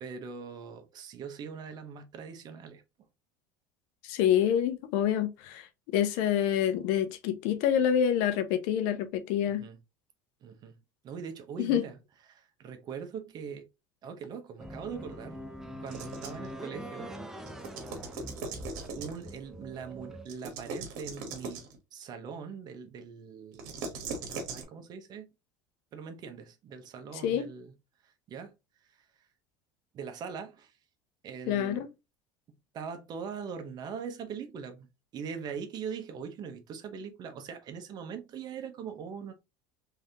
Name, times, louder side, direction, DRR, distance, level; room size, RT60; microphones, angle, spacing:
voice 1, 0.0-2.8 9.5-9.8 10.4-10.8 11.0-12.0 12.3-13.7 14.0-15.4 15.8-17.1 18.9-21.6 21.9-23.9 24.5-25.3 25.9-27.7 28.0-28.5 29.9-30.7 31.2-31.8 32.7-34.9 35.1-39.3, right 6 dB, 45° right, 0.9 m, -41 dB
voice 2, 4.0-9.6 11.6-11.8 27.2-27.5 31.5-31.9, left 9 dB, 75° left, 0.6 m, -27 dB
sound 1, 14.6-20.3, equal, 5° right, 0.6 m, -43 dB
sound 2, 15.9-16.5 17.5-19.4 20.3-21.8 23.5-24.6, right 4 dB, 80° right, 1.1 m, -40 dB
3.5 x 3.3 x 2.8 m
supercardioid pair, 115°, 10 cm